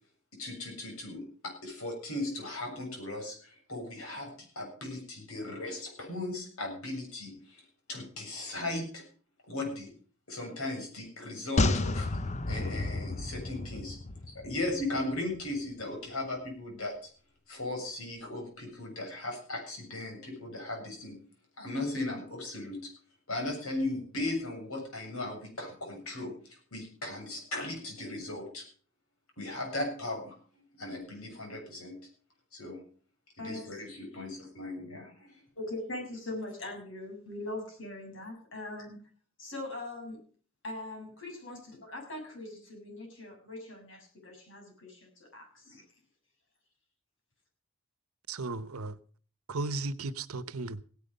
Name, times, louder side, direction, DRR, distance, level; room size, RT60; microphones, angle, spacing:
voice 1, 0.3-9.1 9.4-9.9 10.3-14.0 14.3-17.1 17.5-21.2 21.6-22.9 23.3-28.7 29.4-32.0 32.5-32.8 33.4-35.4, left 2 dB, 80° left, 7.3 m, -37 dB
sound 1, 11.6-15.0 15.3-15.4, left 2 dB, 30° left, 0.8 m, -31 dB
voice 2, 33.4-33.8 35.6-39.0 39.4-40.2 40.6-41.6 41.9-45.8, left 2 dB, 60° left, 7.2 m, -41 dB
voice 3, 48.3-49.0 49.5-50.8, right 3 dB, 85° right, 1.0 m, -35 dB
17.0 x 11.0 x 5.4 m
head